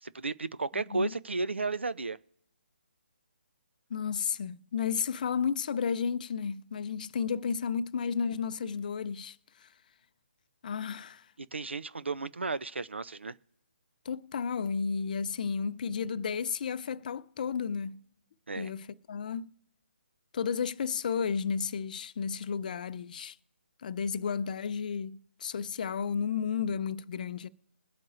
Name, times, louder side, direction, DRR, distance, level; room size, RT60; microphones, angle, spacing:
voice 1, 0.0-2.2 11.5-13.4 18.5-18.7, right 3 dB, 85° right, 0.5 m, -33 dB
voice 2, 0.7-1.1 3.9-9.7 10.6-11.3 14.0-18.0 18.6-19.5 20.3-23.4 23.8-27.5, left 6 dB, 45° left, 0.5 m, -32 dB
22.0 x 7.6 x 2.5 m
figure-of-eight pair, 145°, 6 cm